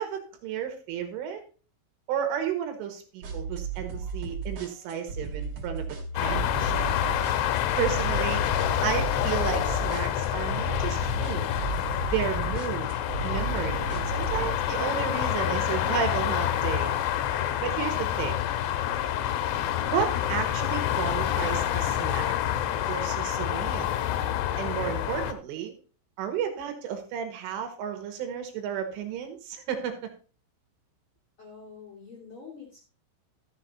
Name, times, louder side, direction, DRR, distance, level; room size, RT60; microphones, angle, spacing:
voice 1, 0.0-1.4 2.1-5.9 6.2-7.0 7.8-8.4 8.8-11.5 12.0-12.9 13.2-16.9 17.3-18.4 19.9-22.3 22.9-23.9 24.6-25.7 26.2-30.1, right 8 dB, 80° right, 6 dB, 3.9 m, -32 dB
sound 1, 3.2-14.6, right 5 dB, 40° right, 2.8 m, -35 dB
sound 2, 6.2-25.3, left 11 dB, 85° left, 3.3 m, -27 dB
voice 2, 31.4-32.8, left 5 dB, 35° left, -2 dB, 2.4 m, -46 dB
13.0 x 7.0 x 4.1 m, 0.36 s
omnidirectional pair, 5.8 m